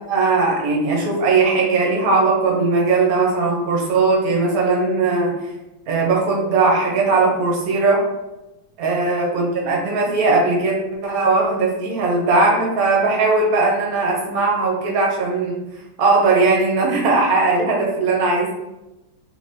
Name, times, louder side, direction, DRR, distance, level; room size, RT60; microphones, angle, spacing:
voice 1, 0.1-5.3 5.9-8.0 8.8-10.7 11.0-15.6 16.0-18.5, right 3 dB, 55° right, -1 dB, 1.1 m, -18 dB
3.8 x 3.2 x 2.7 m, 0.99 s
omnidirectional pair, 2.3 m